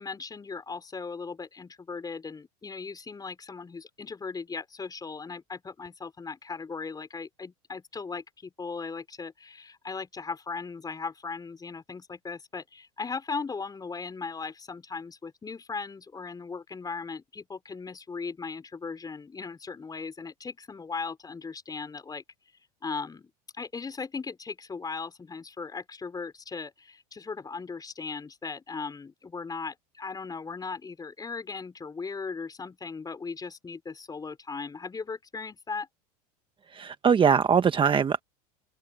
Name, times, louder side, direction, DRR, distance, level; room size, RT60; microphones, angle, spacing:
voice 1, 0.0-22.2 22.8-23.3 23.6-35.9, left 4 dB, 20° left, 5.2 m, -38 dB
voice 2, 36.7-38.2, right 7 dB, 25° right, 1.3 m, -22 dB
hypercardioid pair, 100°, 19 cm